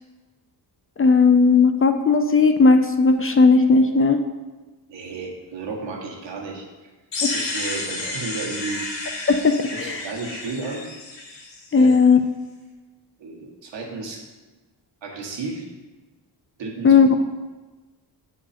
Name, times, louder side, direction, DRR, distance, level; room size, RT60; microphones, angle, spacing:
voice 1, 1.0-4.2 7.2-7.3 9.3-10.0 11.7-12.2 16.8-17.1, left 4 dB, 30° left, 8 dB, 0.5 m, -16 dB
voice 2, 4.9-6.7 7.2-8.8 9.7-10.8 11.8-11.9 13.2-14.2 15.0-15.7 16.6-16.9, right 3 dB, 80° right, -1 dB, 1.7 m, -33 dB
sound 1, 7.1-12.0, left 2 dB, 75° left, 1.9 m, -31 dB
10.0 x 4.5 x 4.3 m, 1.2 s
cardioid pair, 115°, 44 cm